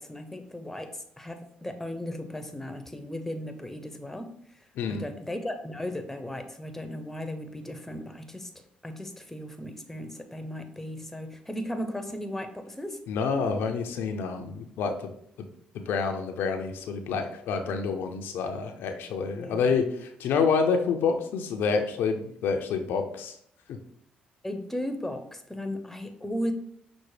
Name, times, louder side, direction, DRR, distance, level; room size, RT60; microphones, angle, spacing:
voice 1, 0.0-13.0 19.3-19.7 24.4-26.5, left 1 dB, 5° left, 7 dB, 0.6 m, -36 dB
voice 2, 13.1-15.1 15.4-15.5 15.7-23.4 23.7-23.8, left 5 dB, 75° left, 5 dB, 0.4 m, -28 dB
5.9 x 2.1 x 3.2 m, 0.68 s
supercardioid pair, 60°, 4 cm